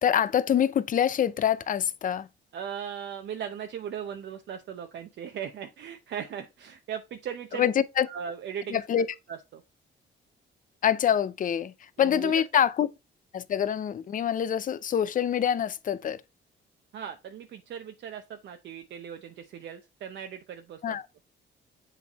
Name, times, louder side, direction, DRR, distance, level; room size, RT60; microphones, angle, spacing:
voice 1, 0.0-2.3 7.6-8.1 8.7-9.1 10.8-11.7 12.0-12.9 13.3-16.2 20.8-21.0, left 9 dB, 40° left, 0.5 m, -25 dB
voice 2, 2.5-7.7 8.1-8.8 9.3-9.6 12.0-12.4 16.9-21.0, right 8 dB, 65° right, 0.7 m, -38 dB
7.4 x 3.3 x 4.0 m
cardioid pair, 90°, 20 cm